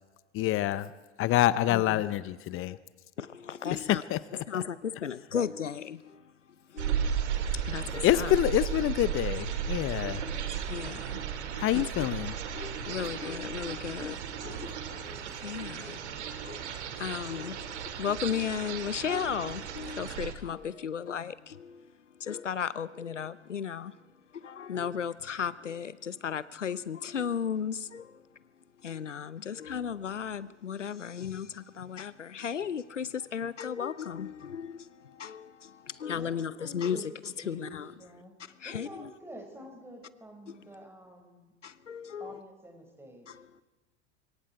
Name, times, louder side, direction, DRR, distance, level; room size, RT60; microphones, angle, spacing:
voice 1, 0.3-0.9 1.2-2.8 3.7-4.6 8.0-10.2 11.6-12.4, left 14 dB, 35° left, 0.8 m, -27 dB
voice 2, 1.7-2.0 2.5-2.8 3.2-4.0 4.5-6.2 6.7-7.2 7.5-8.3 10.0-10.1 10.7-11.2 11.7-11.9 12.5-16.0 16.4-21.9 22.2-23.9 24.3-28.2 28.8-37.0 37.5-37.9 38.6-39.1 40.5-40.6 41.6-42.4 43.3-43.6, left 7 dB, 90° left, 0.8 m, -35 dB
sound 1, 6.8-20.3, right 8 dB, 70° right, 2.4 m, -35 dB
voice 3, 36.1-37.1 37.4-38.3 38.6-41.5 42.2-43.3, right 1 dB, 5° right, 5.8 m, -48 dB
25.0 x 23.0 x 4.7 m
figure-of-eight pair, 80°, 35 cm